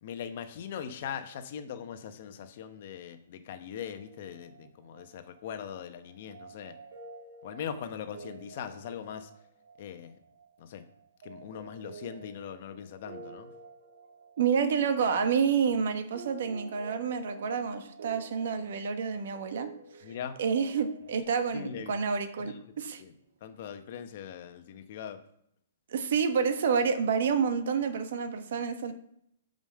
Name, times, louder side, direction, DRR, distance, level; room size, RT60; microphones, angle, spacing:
voice 1, 0.0-6.8 7.4-9.3 9.8-10.2 10.6-10.8 11.2-13.5 20.0-20.4 21.5-21.9 22.4-22.6 23.0-23.1 23.4-25.2, left 8 dB, 45° left, 8 dB, 0.9 m, -41 dB
sound 1, 3.7-21.2, right 4 dB, 80° right, 1.7 m, -51 dB
voice 2, 14.4-19.7 20.4-23.0 25.9-28.9, right 6 dB, 60° right, 8 dB, 1.1 m, -28 dB
5.6 x 5.1 x 6.3 m, 0.75 s
hypercardioid pair, 160°, 0 cm